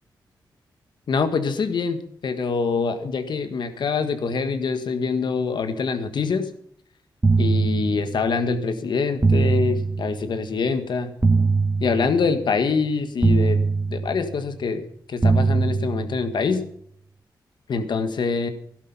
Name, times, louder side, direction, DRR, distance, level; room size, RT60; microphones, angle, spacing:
voice 1, 1.1-6.5 7.4-11.1 11.8-13.6 13.9-16.6 17.7-18.5, left 5 dB, 70° left, 9 dB, 1.7 m, -25 dB
sound 1, 7.2-8.4 9.2-10.4 11.2-12.4 13.2-14.4 15.2-16.4, right 4 dB, 20° right, 1.1 m, -22 dB
17.0 x 11.5 x 5.8 m, 0.67 s
wide cardioid pair, 110°, 8 cm